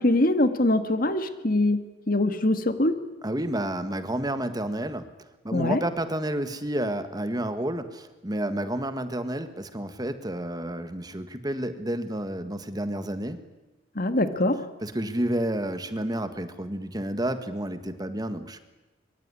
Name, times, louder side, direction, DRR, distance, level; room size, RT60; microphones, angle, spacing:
voice 1, 0.0-3.0 5.5-5.8 14.0-14.6, left 1 dB, 50° left, 9 dB, 2.1 m, -23 dB
voice 2, 3.2-5.1 5.4-13.4 14.8-18.6, right 1 dB, 20° right, 10 dB, 1.7 m, -30 dB
24.5 x 24.0 x 9.9 m, 1.1 s
head